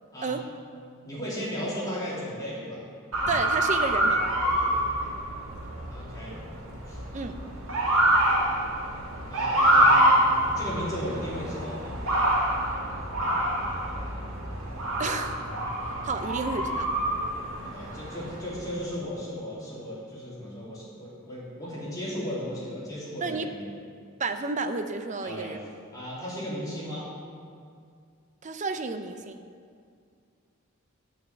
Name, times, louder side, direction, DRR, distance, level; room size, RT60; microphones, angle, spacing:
voice 1, 1.0-2.8 5.9-6.4 6.9-7.0 9.3-10.3 10.6-12.0 17.6-23.7 25.2-25.5 25.9-27.1, equal, 20° left, -8 dB, 3.1 m, -35 dB
Motor vehicle (road) / Siren, 3.1-18.7, right 1 dB, 80° right, 2.1 m, -26 dB
voice 2, 3.3-4.3 7.1-7.4 15.0-15.4 16.0-16.9 23.2-23.5 24.2-25.6 28.4-29.4, right 4 dB, 35° right, 8 dB, 0.6 m, -31 dB
9.9 x 5.9 x 8.1 m, 2.3 s
head